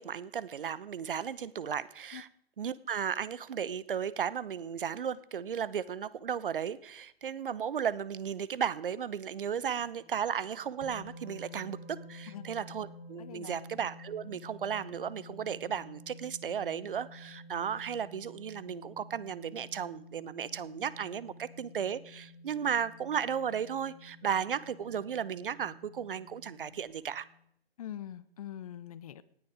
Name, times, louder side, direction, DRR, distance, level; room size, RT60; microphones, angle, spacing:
voice 1, 0.0-2.3 2.6-27.3, right 8 dB, 60° right, 19 dB, 0.9 m, -35 dB
sound 1, 9.5-27.3, left 1 dB, 80° right, 4.2 m, -51 dB
voice 2, 12.3-12.6 13.2-13.6 27.8-29.2, left 11 dB, 35° left, 18 dB, 0.7 m, -43 dB
18.0 x 10.5 x 4.9 m, 0.70 s
figure-of-eight pair, 135°, 31 cm